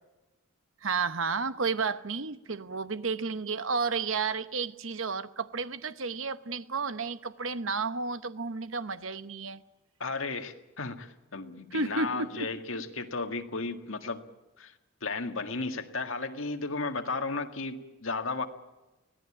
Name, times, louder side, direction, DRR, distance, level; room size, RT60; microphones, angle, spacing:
voice 1, 0.8-9.6 11.7-12.5, right 4 dB, 70° right, 1.0 m, -32 dB
voice 2, 10.0-14.2 14.6-14.7 15.0-18.5, left 3 dB, 75° left, 1.9 m, -34 dB
25.0 x 17.5 x 8.7 m
head